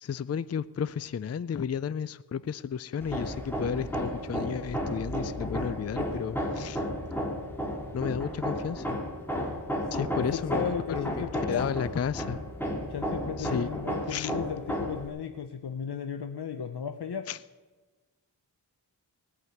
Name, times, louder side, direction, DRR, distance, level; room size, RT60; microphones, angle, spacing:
voice 1, 0.0-6.8 7.9-9.0 9.9-12.4 13.4-13.7 14.1-14.3 17.3-17.4, left 7 dB, 40° left, 17 dB, 0.4 m, -33 dB
Hammer, 3.0-15.1, equal, 5° left, 2.5 m, -33 dB
voice 2, 10.1-11.7 12.9-17.3, left 7 dB, 65° left, 8 dB, 0.7 m, -35 dB
18.0 x 6.1 x 9.4 m, 1.3 s
wide cardioid pair, 65°, 42 cm